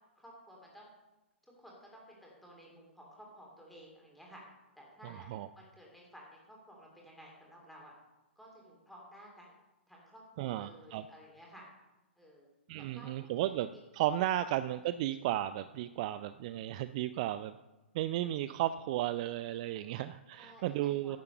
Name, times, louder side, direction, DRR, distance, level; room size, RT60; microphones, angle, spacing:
voice 1, 0.2-0.9 1.4-4.4 4.8-5.3 5.6-7.9 8.4-9.6 9.9-11.7 12.2-12.5 12.8-13.5 14.4-14.5 20.4-21.2, equal, ahead, -2 dB, 3.5 m, -55 dB
voice 2, 10.4-11.0 12.7-17.5 17.9-21.2, right 13 dB, 35° right, 13 dB, 0.4 m, -34 dB
10.5 x 8.3 x 6.8 m, 1.0 s
figure-of-eight pair, 115°, 6 cm